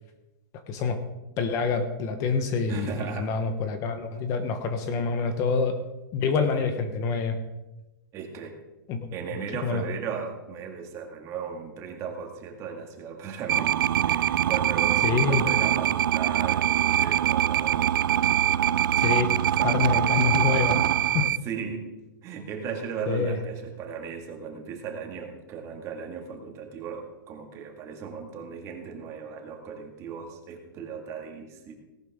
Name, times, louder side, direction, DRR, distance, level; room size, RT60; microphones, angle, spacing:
voice 1, 0.7-1.0 1.4-5.7 6.1-7.4 8.9-9.1 9.6-9.8 15.0-15.4 19.0-19.3 19.6-20.8 21.1-21.3 23.1-23.4, left 5 dB, 30° left, 8 dB, 1.1 m, -26 dB
voice 2, 2.7-3.4 6.3-6.7 8.1-8.5 9.1-17.9 19.4-20.0 21.4-21.9 22.2-31.7, right 6 dB, 25° right, 3 dB, 2.0 m, -37 dB
sound 1, 13.5-21.4, right 11 dB, 80° right, 0.5 m, -23 dB
18.0 x 11.5 x 3.7 m, 1.0 s
hypercardioid pair, 155°, 11 cm